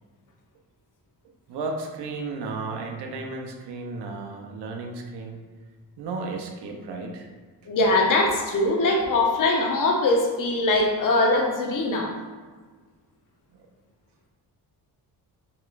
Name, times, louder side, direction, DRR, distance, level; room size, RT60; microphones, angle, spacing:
voice 1, 1.5-5.4 6.0-7.3 13.5-13.7, right 3 dB, 90° right, 2 dB, 0.7 m, -34 dB
voice 2, 7.7-12.1, left 2 dB, 55° left, 1 dB, 0.9 m, -22 dB
5.5 x 3.0 x 2.5 m, 1.5 s
cardioid pair, 110°, 39 cm